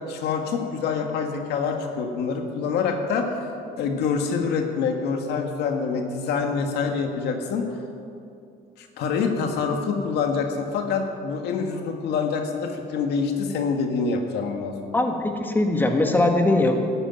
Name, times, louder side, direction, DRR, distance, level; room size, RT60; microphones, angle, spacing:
voice 1, 0.1-3.4 3.8-7.7 8.8-15.0, left 5 dB, 80° left, 4 dB, 1.8 m, -26 dB
voice 2, 14.9-16.8, left 2 dB, 10° left, 3 dB, 1.6 m, -21 dB
13.5 x 10.0 x 9.1 m, 2.5 s
cardioid pair, 110°, 17 cm